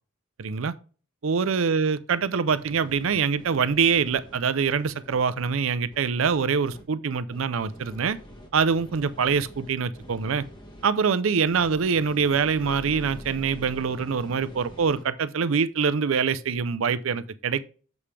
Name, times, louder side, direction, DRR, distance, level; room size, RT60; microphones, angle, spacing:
voice 1, 0.4-0.7 1.2-8.2 8.5-10.5 10.8-17.6, right 6 dB, 80° right, 0.5 m, -24 dB
sound 1, 2.5-5.5 5.9-6.8 7.3-10.8 11.5-15.0, equal, 20° left, 1.1 m, -45 dB
7.1 x 5.0 x 3.3 m
head